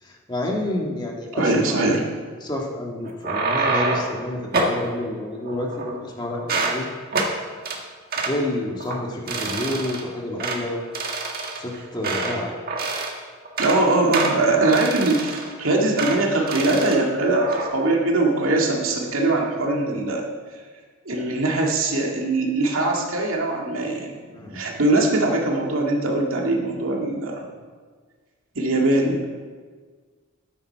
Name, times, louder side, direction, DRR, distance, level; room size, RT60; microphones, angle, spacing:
voice 1, 0.0-1.8 2.4-6.9 8.3-10.8 11.6-12.6 24.3-24.6, left 1 dB, 20° left, -1 dB, 1.8 m, -29 dB
voice 2, 1.3-2.0 13.6-20.3 21.1-24.1 24.5-27.5 28.6-29.3, right 2 dB, 85° right, 0 dB, 2.1 m, -21 dB
sound 1, 3.0-4.2 4.5-4.8 5.4-6.1 6.4-6.8 7.1-7.3 7.7-7.8 8.1-8.4 8.8-9.0 9.3-10.0 10.4-10.6 10.9-12.4 12.7-13.2 13.5-13.8 14.1-15.5 16.0-16.2 16.5-17.0 17.3-17.7, right 3 dB, 45° right, 1.6 m, -26 dB
13.5 x 9.5 x 4.6 m, 1.5 s
head